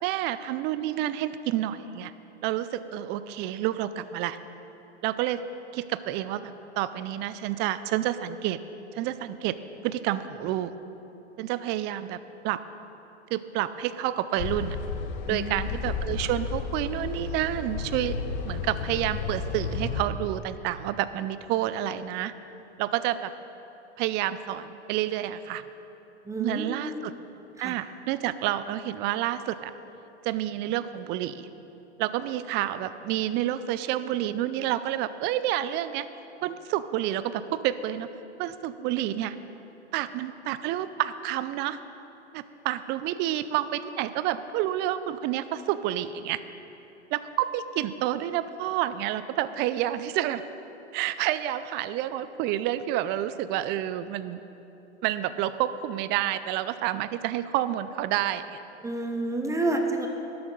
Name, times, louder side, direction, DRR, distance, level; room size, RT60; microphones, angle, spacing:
voice 1, 0.0-2.1 2.4-4.4 5.0-5.4 5.7-8.6 8.9-9.5 9.8-10.7 11.4-12.2 12.4-12.6 13.3-14.8 15.3-18.2 18.4-22.3 22.8-23.3 24.0-25.6 26.4-27.1 27.6-29.7 30.2-31.4 32.0-36.1 36.4-38.1 38.4-39.3 39.9-41.8 42.3-46.4 47.1-50.4 50.9-54.4 55.0-58.6, right 13 dB, 30° right, 14 dB, 0.5 m, -29 dB
sound 1, 14.4-20.1, left 5 dB, 50° left, 1.0 m, -32 dB
voice 2, 15.3-15.6 26.2-27.2 27.6-27.8 58.8-60.1, right 2 dB, 10° right, 4 dB, 0.9 m, -29 dB
13.0 x 11.0 x 3.9 m, 3.0 s
hypercardioid pair, 110°, 35 cm